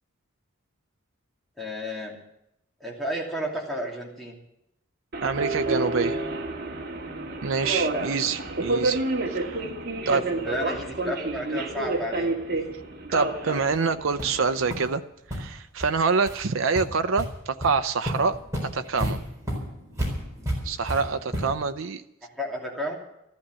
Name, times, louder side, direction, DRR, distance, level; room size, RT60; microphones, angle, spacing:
voice 1, 1.6-2.2 2.8-4.4 10.0-12.6 22.2-22.9, equal, ahead, -3 dB, 2.7 m, -32 dB
Subway metro underground, 5.1-14.8, right 2 dB, 45° right, 1.8 m, -29 dB
voice 2, 5.2-6.2 7.4-9.0 9.3-9.6 10.1-10.3 13.1-15.0 15.3-18.4 18.7-19.2 20.6-22.0, right 5 dB, 70° right, 9 dB, 0.6 m, -26 dB
sound 1, 13.7-13.8 14.2-14.4 14.7-14.8 15.3-15.4 15.8-15.9 16.2-16.4 16.7-17.3 17.6-17.7 18.0-21.7, equal, 15° right, 4.4 m, -31 dB
14.0 x 11.5 x 7.5 m, 0.84 s
head